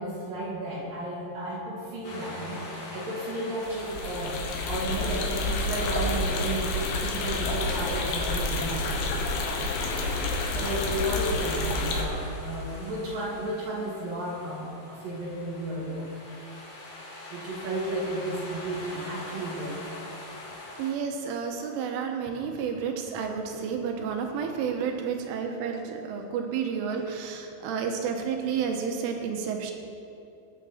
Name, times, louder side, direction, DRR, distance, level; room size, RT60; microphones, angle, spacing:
voice 1, 0.0-8.9 10.3-16.1 17.3-19.8, right 1 dB, 55° right, -4 dB, 3.1 m, -33 dB
sound 1, 2.0-20.9, left 2 dB, 55° left, 5.2 m, -44 dB
sound 2, 3.6-12.0, left 2 dB, 70° left, 3.3 m, -29 dB
voice 2, 20.8-29.7, right 6 dB, 80° right, 3 dB, 3.5 m, -31 dB
21.0 x 9.5 x 4.2 m, 2.7 s
omnidirectional pair, 5.7 m